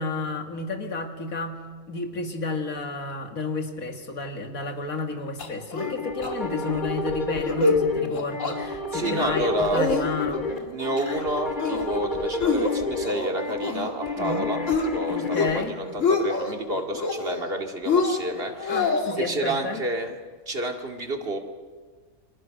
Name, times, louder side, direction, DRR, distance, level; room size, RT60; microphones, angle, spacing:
voice 1, 0.0-1.6 1.9-10.6 14.2-14.5 15.1-15.7 18.7-19.8, left 3 dB, 85° left, 4 dB, 2.6 m, -31 dB
sound 1, 5.4-6.0 6.2-6.3 6.7-6.9 7.3-7.8 8.1-8.6 9.0-9.4 9.7-10.4 10.8-11.3 11.6-12.0 12.4-13.9 14.2-14.9 15.2-15.6 15.9-16.5 16.9-17.5 17.9-19.2, left 3 dB, 65° left, 2.7 m, -26 dB
sound 2, 5.8-15.6, left 3 dB, 35° left, 2.6 m, -30 dB
voice 2, 8.9-9.9 10.3-10.4 10.7-14.6 14.9-20.2 20.5-21.4, right 1 dB, 45° right, 4 dB, 2.4 m, -30 dB
29.5 x 24.0 x 6.5 m, 1.5 s
omnidirectional pair, 1.4 m